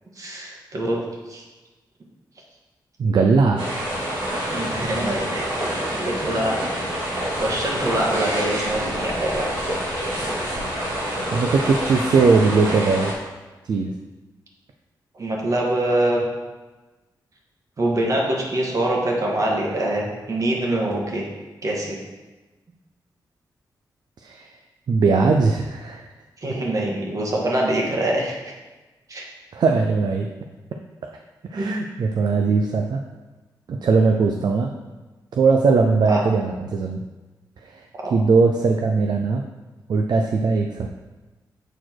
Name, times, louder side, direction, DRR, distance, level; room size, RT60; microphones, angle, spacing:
voice 1, 0.2-1.0 1.3-1.4 4.5-6.7 7.4-9.5 15.2-16.2 17.8-21.2 21.6-22.0 26.4-28.3 29.1-29.3 31.5-31.7 36.1-36.2 38.0-38.1, right 1 dB, 45° right, -2 dB, 1.7 m, -24 dB
voice 2, 3.0-3.7 10.9-13.1 13.6-13.9 24.2-24.5 24.9-26.1 29.5-30.3 31.5-33.0 33.7-34.7 35.3-37.0 37.6-37.8 38.1-39.4 39.9-40.9, right 4 dB, 65° right, 3 dB, 0.5 m, -20 dB
sound 1, 3.6-13.1, equal, 90° right, 2.4 m, -27 dB
7.9 x 4.3 x 4.6 m, 1.2 s
cardioid pair, 95°, 8 cm